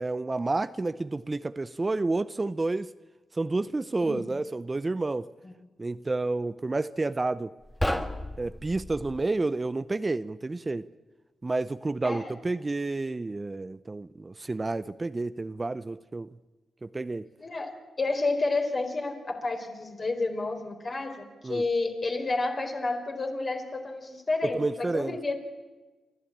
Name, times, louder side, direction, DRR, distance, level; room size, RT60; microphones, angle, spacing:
voice 1, 0.0-2.9 3.3-5.3 5.8-7.5 8.4-10.9 11.4-16.4 16.8-17.3 21.4-21.6 24.4-25.2, right 3 dB, 30° right, 0.7 m, -30 dB
sound 1, 7.6-9.3, left 1 dB, 10° left, 1.7 m, -32 dB
voice 2, 12.0-12.3 17.4-25.4, left 3 dB, 45° left, 4.3 m, -30 dB
28.5 x 12.5 x 8.7 m
supercardioid pair, 40°, 0 cm